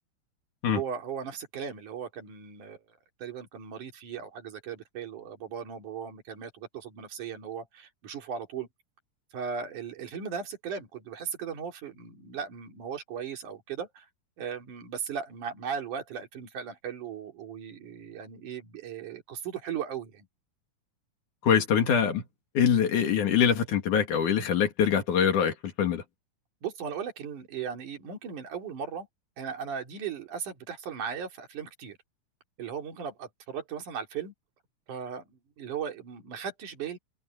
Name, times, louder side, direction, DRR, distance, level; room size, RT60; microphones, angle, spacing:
voice 1, 0.7-2.8 3.2-8.7 9.3-14.1 14.4-20.3 26.6-29.1 29.4-32.0 32.6-34.3 34.9-37.0, right 7 dB, 75° right, 4.6 m, -37 dB
voice 2, 21.4-22.2 22.6-26.0, left 7 dB, 75° left, 3.7 m, -24 dB
omnidirectional pair, 3.6 m